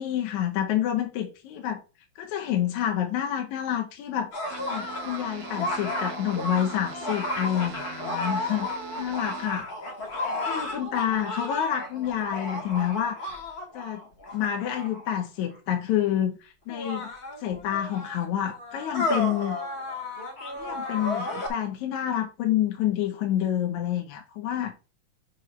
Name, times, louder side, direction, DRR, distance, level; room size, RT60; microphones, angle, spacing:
voice 1, 0.0-1.8 2.2-4.3 4.7-8.7 9.0-9.7 10.2-13.4 13.7-14.0 14.3-17.1 17.4-19.6 20.6-24.7, left 10 dB, 70° left, 1.9 m, -28 dB
sound 1, 4.3-15.1 16.0-16.1 16.7-21.5, left 2 dB, 45° left, 1.2 m, -33 dB
sound 2, 4.5-9.5, right 12 dB, 85° right, 2.5 m, -42 dB
6.4 x 3.2 x 5.8 m
omnidirectional pair, 4.0 m